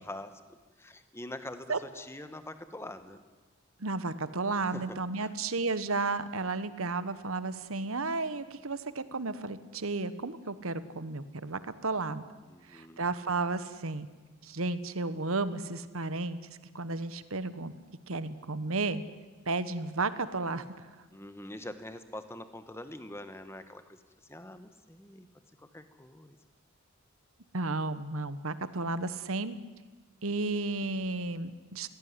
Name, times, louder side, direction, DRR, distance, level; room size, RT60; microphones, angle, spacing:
voice 1, 0.0-3.2 4.6-5.3 12.4-13.0 21.1-24.0 24.3-25.3 25.6-26.4 28.5-28.9, left 1 dB, 10° left, 10 dB, 1.2 m, -45 dB
voice 2, 3.8-12.2 12.7-14.1 14.4-17.7 18.1-19.0 19.5-20.8 27.5-29.6 30.2-31.9, right 3 dB, 70° right, 13 dB, 1.2 m, -33 dB
22.0 x 17.0 x 9.7 m, 1.3 s
head